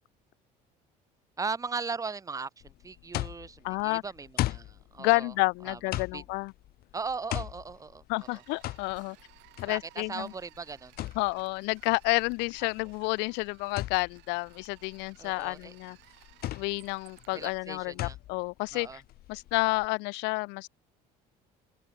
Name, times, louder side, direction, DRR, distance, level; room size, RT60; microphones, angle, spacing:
voice 1, 1.4-5.3 5.6-6.2 6.9-8.0 8.3-8.4 9.7-10.9 12.6-12.7 15.2-15.7 17.3-18.2 18.7-19.0, right 4 dB, 20° right, 1.3 m, -38 dB
sound 1, 2.6-19.9, left 15 dB, 60° left, 1.1 m, -39 dB
voice 2, 3.6-4.0 5.0-6.5 8.1-9.2 9.6-10.3 11.2-16.0 16.6-19.0 19.3-20.7, left 27 dB, 90° left, 0.5 m, -30 dB
sound 2, 8.2-17.6, right 21 dB, 80° right, 7.1 m, -59 dB
sound 3, 9.0-11.2, right 10 dB, 45° right, 4.8 m, -66 dB
open air
cardioid pair, 135°, 18 cm